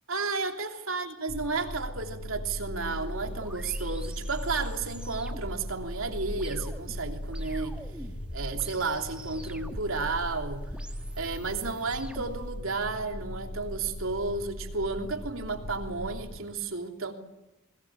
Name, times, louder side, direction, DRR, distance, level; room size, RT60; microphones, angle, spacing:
voice 1, 0.1-7.8 8.3-10.7 11.2-17.1, right 3 dB, 80° right, 3.1 m, -32 dB
sound 1, 1.3-16.4, equal, 50° left, 2.6 m, -38 dB
sound 2, 2.8-12.5, equal, 5° right, 1.6 m, -45 dB
21.5 x 21.0 x 8.7 m
head